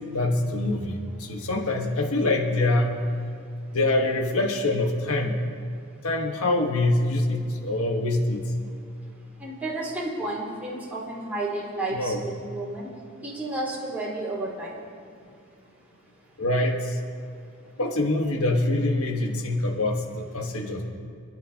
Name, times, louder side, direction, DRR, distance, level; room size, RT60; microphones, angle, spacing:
voice 1, 0.1-3.0 3.7-5.4 6.0-8.4 11.9-12.2 16.4-17.0 17.8-20.9, left 2 dB, 80° left, 2 dB, 1.4 m, -25 dB
voice 2, 9.4-12.9 13.2-14.7, right 2 dB, 10° right, -8 dB, 4.0 m, -31 dB
26.0 x 12.0 x 2.9 m, 2.4 s
head